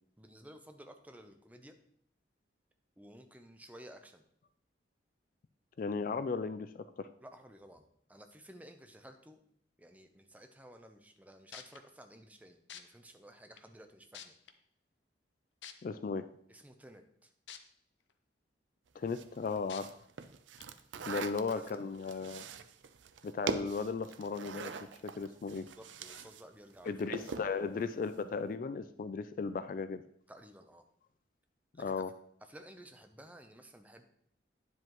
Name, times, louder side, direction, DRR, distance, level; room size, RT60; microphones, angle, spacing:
voice 1, 0.2-1.7 3.0-4.2 7.2-9.4 9.8-14.3 16.5-17.3 20.9-21.2 21.5-21.9 25.5-26.9 27.3-27.9 30.3-30.8 31.7-32.0 32.4-34.1, right 1 dB, 10° right, 6 dB, 0.6 m, -54 dB
voice 2, 5.8-7.1 15.8-16.3 19.0-20.0 21.1-22.4 23.2-24.7 25.0-25.7 26.8-30.0 31.8-32.1, left 4 dB, 45° left, 12 dB, 0.3 m, -36 dB
sound 1, 11.2-11.3 11.5-11.8 12.7-12.8 13.6-13.7 14.1-14.5 15.6-15.7 17.5-17.6 18.1-18.2 19.7-19.8 20.6-20.7, left 9 dB, 75° left, 0.7 m, -47 dB
sound 2, 19.1-26.4 26.7-27.6, right 5 dB, 80° right, 0.5 m, -42 dB
9.5 x 7.7 x 3.0 m, 0.68 s
head